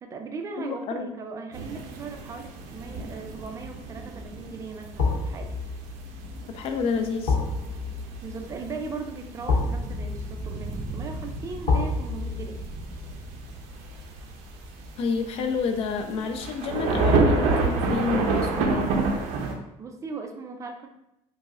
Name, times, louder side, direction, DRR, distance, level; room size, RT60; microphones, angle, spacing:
voice 1, 0.0-5.5 8.2-12.6 19.8-20.9, right 4 dB, 25° right, 4 dB, 0.4 m, -38 dB
voice 2, 0.6-1.1 6.5-7.4 15.0-18.9, left 5 dB, 50° left, 6 dB, 0.4 m, -29 dB
sound 1, 1.5-19.5, right 3 dB, 80° right, 0.5 m, -30 dB
sound 2, 3.3-3.6 5.0-16.0 16.3-16.5, left 4 dB, 75° left, 0.9 m, -31 dB
4.8 x 2.0 x 2.4 m, 0.83 s
cardioid pair, 150°, 12 cm